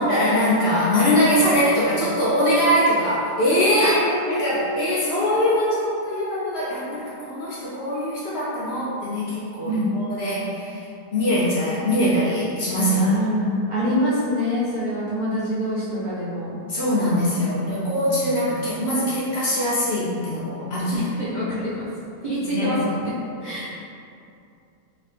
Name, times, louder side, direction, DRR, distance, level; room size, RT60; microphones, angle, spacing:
voice 1, 0.0-4.0 4.3-10.8 11.1-13.1 16.7-21.1 22.4-22.8, equal, 55° left, -8 dB, 0.8 m, -22 dB
voice 2, 3.8-4.7 9.7-9.9 12.9-16.5 17.4-18.3 20.9-21.8 22.2-23.1 23.4-23.7, equal, 65° right, -10 dB, 0.4 m, -26 dB
3.1 x 2.9 x 3.3 m, 2.5 s
omnidirectional pair, 1.8 m